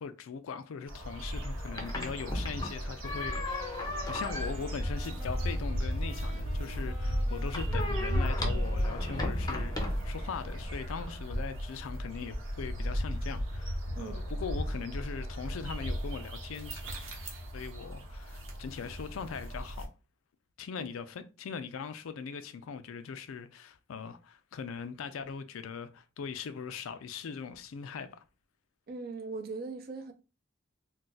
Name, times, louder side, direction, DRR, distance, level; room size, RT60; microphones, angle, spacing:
voice 1, 0.0-16.8 17.5-19.9 20.6-28.2, left 6 dB, 90° left, 0.4 m, -40 dB
sound 1, 0.9-19.8, equal, 90° right, 1.0 m, -35 dB
sound 2, 1.3-10.9, left 1 dB, 20° left, 0.5 m, -38 dB
Wind instrument woodwind instrument, 3.0-10.1, equal, 25° right, 0.9 m, -50 dB
voice 2, 28.9-30.1, right 3 dB, 50° right, 0.5 m, -40 dB
2.4 x 2.2 x 3.9 m
head